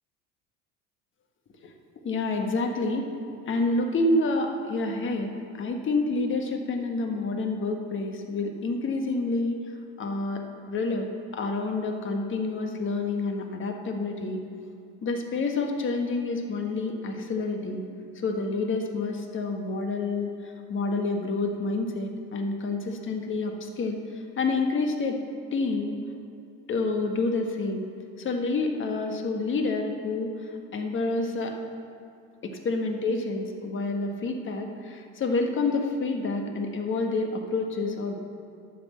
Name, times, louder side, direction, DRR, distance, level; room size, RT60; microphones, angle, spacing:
voice 1, 2.0-3.1 3.5-10.4 10.7-14.4 15.0-17.8 18.1-25.2 25.5-26.0 26.7-27.8 28.2-31.6 32.4-38.2, left 3 dB, 40° left, 3 dB, 1.4 m, -28 dB
11.5 x 6.2 x 7.5 m, 2.4 s
supercardioid pair, 100°, 32 cm